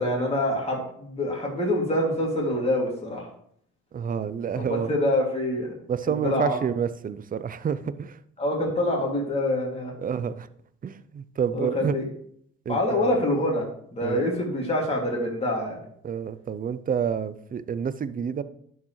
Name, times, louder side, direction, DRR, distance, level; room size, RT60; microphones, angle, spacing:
voice 1, 0.0-3.3 4.5-5.7 6.1-6.6 8.4-9.9 11.5-12.1 12.7-13.7 13.9-15.8, left 1 dB, 20° left, -3 dB, 2.5 m, -26 dB
voice 2, 3.9-4.9 5.9-8.2 10.0-10.5 10.8-11.9 12.7-13.2 14.0-14.2 16.0-18.4, right 7 dB, 30° right, 14 dB, 0.5 m, -29 dB
11.5 x 4.8 x 3.2 m, 0.66 s
cardioid pair, 85°, 29 cm